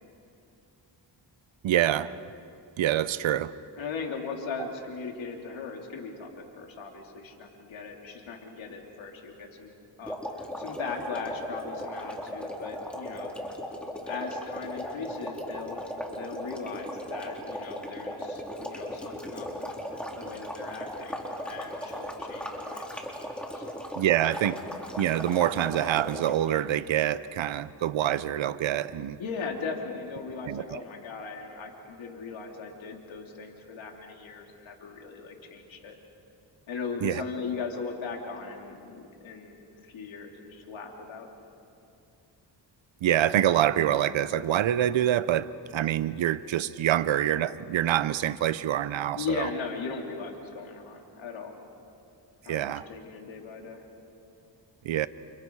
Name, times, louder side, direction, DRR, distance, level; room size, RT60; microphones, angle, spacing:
voice 1, 1.6-2.1 2.8-3.5 24.0-24.6 25.0-29.2 30.5-30.8 37.0-37.2 43.0-49.5 52.5-52.9 54.8-55.1, right 11 dB, 80° right, 15 dB, 0.9 m, -26 dB
voice 2, 3.8-9.7 10.0-13.3 14.1-15.8 16.1-21.2 21.5-23.0 23.5-23.7 29.2-35.9 36.7-41.3 49.2-51.5 52.5-53.9, left 5 dB, 85° left, 1 dB, 3.5 m, -38 dB
sound 1, 10.0-26.5, equal, ahead, 4.1 m, -37 dB
29.5 x 29.5 x 4.8 m, 2.6 s
cardioid pair, 75°, 45 cm